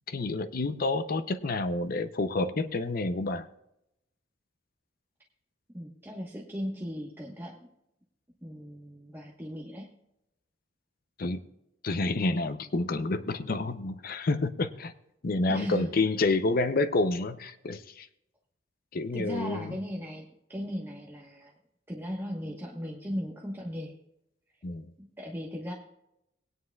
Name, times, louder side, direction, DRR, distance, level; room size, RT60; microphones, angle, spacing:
voice 1, 0.1-3.5 11.2-11.4 11.8-14.9 15.2-18.1 18.9-19.8 24.6-24.9, left 2 dB, 50° left, 12 dB, 0.5 m, -29 dB
voice 2, 5.7-7.6 8.4-9.9 15.5-15.9 19.1-21.5 21.9-23.9 25.0-25.7, equal, 10° right, -2 dB, 1.1 m, -37 dB
19.5 x 9.5 x 2.3 m, 0.82 s
head